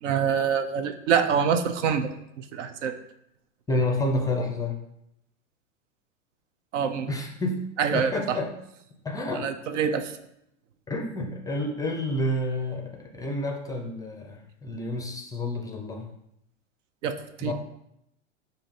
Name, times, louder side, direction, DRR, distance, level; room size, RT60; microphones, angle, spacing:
voice 1, 0.0-2.9 6.7-7.1 7.8-8.4 9.4-10.1 17.0-17.5, right 7 dB, 70° right, 9 dB, 0.6 m, -26 dB
voice 2, 3.7-4.8 7.1-7.6 7.9-8.5 9.0-9.5 10.9-16.1 17.4-17.5, left 1 dB, 10° left, 2 dB, 0.5 m, -29 dB
5.0 x 2.8 x 3.6 m, 0.78 s
hypercardioid pair, 100°, 38 cm